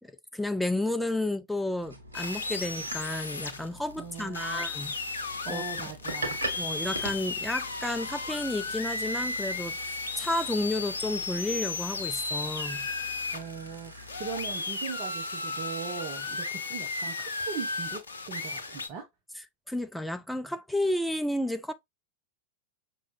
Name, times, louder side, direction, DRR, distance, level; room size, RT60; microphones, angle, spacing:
voice 1, 0.0-4.9 5.5-5.6 6.6-12.9 19.7-21.7, left 1 dB, ahead, 0.6 m, -32 dB
sound 1, 1.8-14.6, right 1 dB, 80° right, 1.1 m, -43 dB
sound 2, 2.1-18.9, left 3 dB, 75° left, 0.7 m, -34 dB
voice 2, 4.0-4.7 5.4-6.4 13.3-19.1, right 6 dB, 40° right, 1.2 m, -39 dB
5.9 x 3.2 x 2.6 m
figure-of-eight pair, 90°, 0 cm